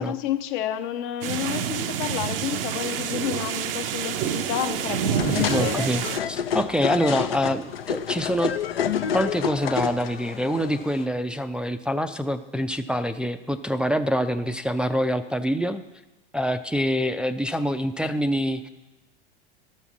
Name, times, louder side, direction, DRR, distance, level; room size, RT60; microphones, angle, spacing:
voice 1, 0.0-5.8, left 11 dB, 60° left, 9 dB, 0.9 m, -30 dB
sound 1, 1.2-6.2, right 9 dB, 75° right, 0.6 m, -28 dB
sound 2, 4.1-11.1, left 8 dB, 85° left, 0.7 m, -29 dB
voice 2, 5.2-8.5 9.1-15.8 16.3-18.7, equal, 5° right, 7 dB, 0.3 m, -25 dB
13.0 x 5.7 x 6.1 m, 1.1 s
hypercardioid pair, 95°, 29 cm